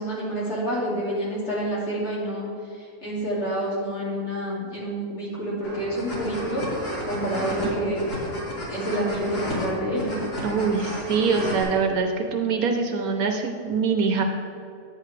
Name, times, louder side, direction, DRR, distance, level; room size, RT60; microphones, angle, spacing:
voice 1, 0.0-6.6 7.0-8.1 8.7-10.3, right 1 dB, 45° left, -7 dB, 2.8 m, -28 dB
sound 1, 5.6-11.6, equal, 85° left, 2.9 m, -32 dB
voice 2, 10.4-14.2, right 5 dB, 70° right, 4 dB, 1.2 m, -24 dB
9.4 x 8.7 x 3.3 m, 2.4 s
omnidirectional pair, 1.7 m